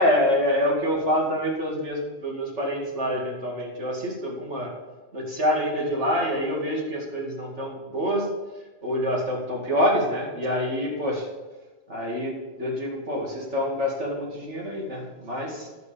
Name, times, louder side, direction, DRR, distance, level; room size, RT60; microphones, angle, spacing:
voice 1, 0.0-4.7 5.1-8.3 8.8-11.3 11.9-15.7, equal, 70° right, -2 dB, 2.7 m, -26 dB
10.5 x 8.1 x 5.2 m, 1.2 s
omnidirectional pair, 1.3 m